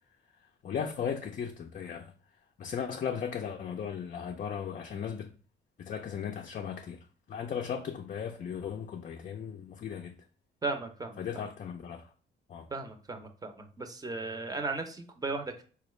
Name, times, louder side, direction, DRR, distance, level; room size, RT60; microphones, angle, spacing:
voice 1, 0.6-2.1 2.6-5.3 5.8-10.1 11.2-12.1 12.5-12.7, left 7 dB, 40° left, 0.4 m, -36 dB
voice 2, 10.6-11.2 12.7-15.6, right 3 dB, 20° right, 0.6 m, -36 dB
4.1 x 2.3 x 3.1 m
cardioid pair, 90°, 20 cm